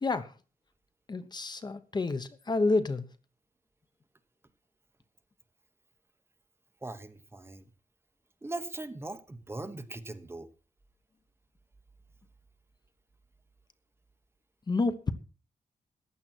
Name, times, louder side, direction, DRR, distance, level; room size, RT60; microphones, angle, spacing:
voice 1, 1.1-3.1 14.7-15.1, left 3 dB, 30° left, 1.0 m, -29 dB
voice 2, 6.8-7.7 8.4-10.5, right 2 dB, 15° right, 1.2 m, -40 dB
15.0 x 10.5 x 4.5 m
wide cardioid pair, 125°, 14 cm